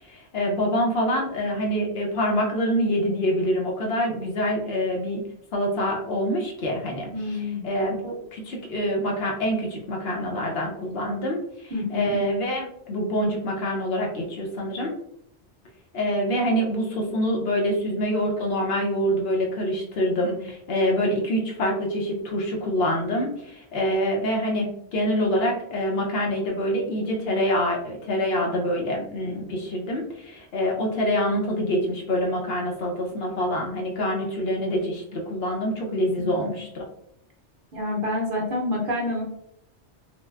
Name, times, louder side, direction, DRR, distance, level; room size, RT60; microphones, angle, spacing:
voice 1, 0.0-5.2 5.5-14.9 15.9-36.8, equal, 65° left, -1 dB, 0.8 m, -26 dB
voice 2, 7.1-7.6 11.7-12.1 36.2-36.6 37.7-39.2, left 2 dB, 55° right, -1 dB, 0.7 m, -28 dB
3.1 x 2.5 x 2.3 m, 0.74 s
omnidirectional pair, 1.2 m